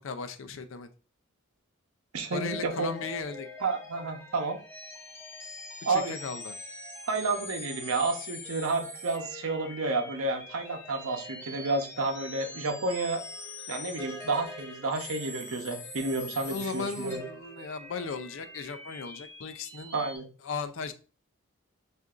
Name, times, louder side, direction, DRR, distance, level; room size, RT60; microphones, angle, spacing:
voice 1, 0.0-0.9 2.3-3.5 5.9-6.6 16.4-19.9 20.4-20.9, left 4 dB, 65° left, 0.5 m, -36 dB
voice 2, 2.1-2.9 3.6-4.6 5.8-6.2 7.1-13.2 13.7-17.2 19.9-20.3, right 3 dB, 85° right, 0.8 m, -30 dB
sound 1, 2.3-20.2, left 2 dB, 10° left, 0.7 m, -43 dB
6.5 x 2.5 x 2.5 m
head